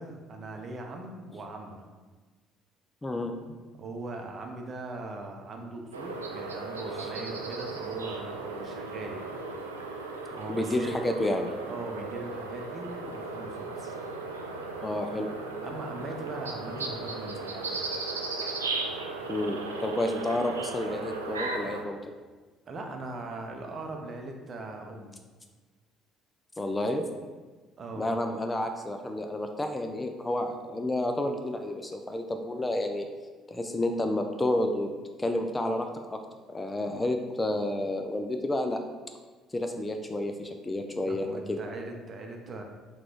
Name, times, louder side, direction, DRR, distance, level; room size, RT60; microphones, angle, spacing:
voice 1, 0.0-1.9 3.8-9.2 10.3-10.9 11.7-13.9 14.6-14.8 15.6-17.9 22.7-25.1 27.8-28.1 41.1-42.6, right 2 dB, 40° right, 2 dB, 0.6 m, -40 dB
voice 2, 3.0-3.6 10.5-11.5 14.8-15.3 19.3-22.0 26.6-27.1 28.0-33.1 33.5-34.9 35.2-36.2 36.5-38.8 39.5-41.6, left 1 dB, 15° left, 5 dB, 0.4 m, -30 dB
sound 1, 5.9-21.8, right 3 dB, 80° right, 0.3 m, -36 dB
3.8 x 2.3 x 4.5 m, 1.3 s
figure-of-eight pair, 50°, 0 cm